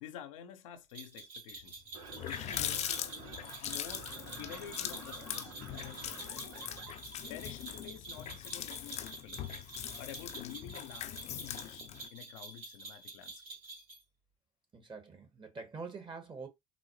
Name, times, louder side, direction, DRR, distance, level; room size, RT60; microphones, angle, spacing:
voice 1, 0.0-1.8 2.3-4.1 4.4-6.5 7.3-9.5 10.0-13.4, left 10 dB, 80° left, 0.6 m, -49 dB
sound 1, 0.9-14.0, right 3 dB, 60° right, 2.6 m, -48 dB
Water tap faucet, 1.6-1.7 2.0-12.1, left 10 dB, 40° left, 0.6 m, -41 dB
sound 2, 1.9-6.9, right 5 dB, 85° right, 1.1 m, -51 dB
voice 2, 14.7-16.5, right 4 dB, 30° right, 1.4 m, -45 dB
4.0 x 2.1 x 3.1 m
hypercardioid pair, 80°, 17 cm